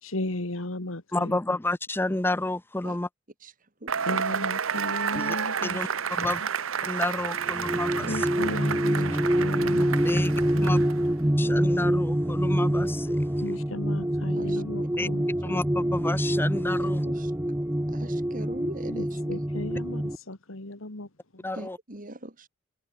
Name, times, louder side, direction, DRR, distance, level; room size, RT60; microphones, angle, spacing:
voice 1, 0.0-1.4 4.0-5.9 6.2-6.5 8.1-10.9 13.4-15.2 18.9-21.4, left 1 dB, 80° left, 2.3 m, -36 dB
voice 2, 1.1-3.1 5.1-5.4 5.6-6.4 6.8-8.3 9.9-10.8 11.4-13.4 15.0-15.1 15.4-17.0 21.4-21.8, left 2 dB, 10° left, 0.6 m, -30 dB
voice 3, 3.4-4.2 5.1-5.2 8.0-8.2 8.4-8.6 8.9-9.0 9.4-9.5 14.3-14.6 17.0-17.3 17.9-19.2 21.5-22.5, right 1 dB, 40° right, 3.2 m, -41 dB
Cheering / Applause / Crowd, 3.9-11.1, right 7 dB, 80° right, 1.0 m, -31 dB
sound 1, 7.4-20.2, equal, 10° right, 1.0 m, -26 dB
head